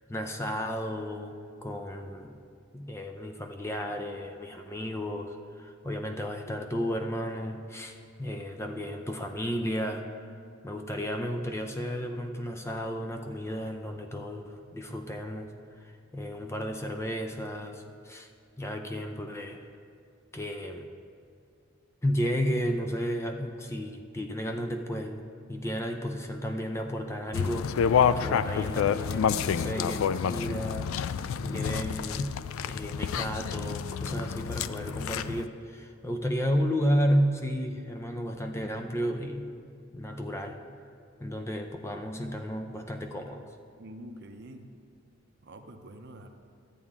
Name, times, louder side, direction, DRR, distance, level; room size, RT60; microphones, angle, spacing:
voice 1, 0.1-2.3 2.7-10.3 10.6-15.5 15.8-18.3 18.6-19.7 20.3-20.9 22.0-25.2 25.5-30.9 31.4-32.4 32.6-39.5 39.9-40.6 41.2-43.5, equal, 15° left, 5 dB, 0.4 m, -33 dB
sound 1, 27.3-35.5, left 7 dB, 75° left, 0.3 m, -29 dB
voice 2, 43.8-44.7 45.4-46.3, right 1 dB, 55° right, 6 dB, 0.7 m, -46 dB
12.5 x 8.5 x 3.6 m, 2.3 s
head